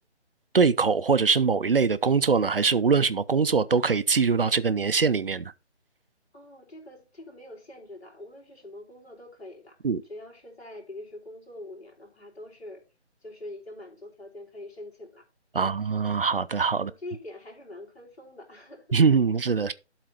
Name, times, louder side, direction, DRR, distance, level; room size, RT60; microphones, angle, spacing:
voice 1, 0.5-5.5 9.8-10.0 15.5-16.9 18.9-19.7, right 5 dB, 55° right, 0.5 m, -22 dB
voice 2, 6.3-9.8 10.0-12.8 13.2-15.3 15.6-15.8 16.8-18.9, left 1 dB, 65° left, 3.9 m, -44 dB
12.0 x 4.0 x 4.1 m
figure-of-eight pair, 150°, 34 cm